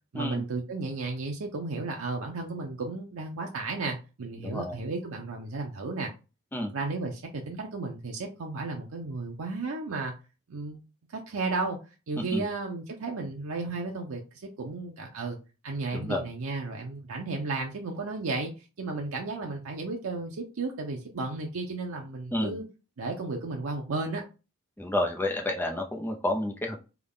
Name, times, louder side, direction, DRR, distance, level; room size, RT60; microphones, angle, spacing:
voice 1, 0.1-6.1 6.7-10.1 10.5-10.8 11.1-11.8 12.1-15.4 15.6-18.5 18.8-22.7 23.0-24.2, right 3 dB, 85° right, 0.6 m, -33 dB
voice 2, 4.4-4.8 6.5-6.7 12.2-12.5 15.9-16.3 22.3-22.6 24.8-26.8, left 1 dB, 10° left, 0.6 m, -30 dB
3.5 x 2.3 x 3.6 m
head